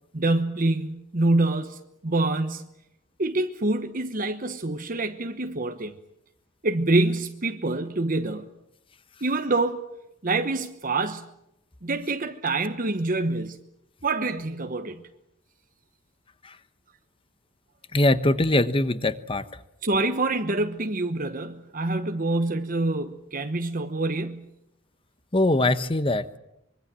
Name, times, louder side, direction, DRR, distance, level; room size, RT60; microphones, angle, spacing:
voice 1, 0.1-2.6 3.2-6.0 6.6-8.5 9.2-9.9 10.2-11.3 11.8-13.6 14.0-15.0 19.8-24.5, right 2 dB, 45° right, 1.1 m, -26 dB
voice 2, 17.9-19.5 25.3-26.4, left 2 dB, 25° left, 1.1 m, -22 dB
25.0 x 23.5 x 7.6 m
head